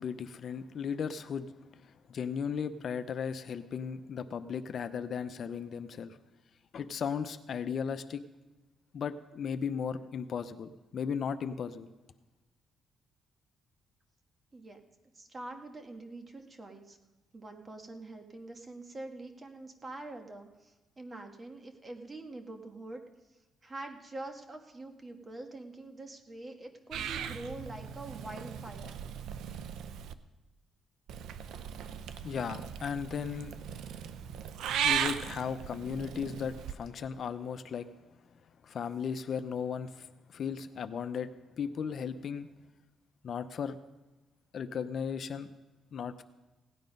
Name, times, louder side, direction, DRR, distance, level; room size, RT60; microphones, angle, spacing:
voice 1, 0.0-1.5 1.8-6.2 6.7-8.2 8.9-11.9 32.2-33.5 34.8-37.9 38.6-41.3 41.6-42.5 43.2-43.8 44.5-45.5 45.9-46.2, left 7 dB, 55° left, 10 dB, 0.7 m, -36 dB
voice 2, 15.1-17.0 17.3-23.0 23.6-29.0, right 2 dB, 25° right, 4 dB, 1.7 m, -45 dB
Purr / Meow, 26.9-30.1 31.1-36.7, right 8 dB, 80° right, 0.6 m, -37 dB
17.0 x 9.6 x 5.3 m, 1.1 s
cardioid pair, 90°, 0 cm